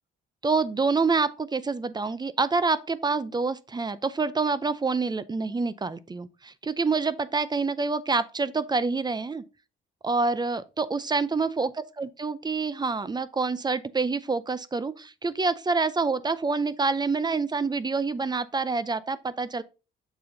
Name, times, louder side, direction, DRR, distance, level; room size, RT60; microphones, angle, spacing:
voice 1, 0.4-9.4 10.0-11.7 12.0-19.6, right 4 dB, 20° right, 0.5 m, -27 dB
6.9 x 4.2 x 3.8 m
cardioid pair, 90°, 20 cm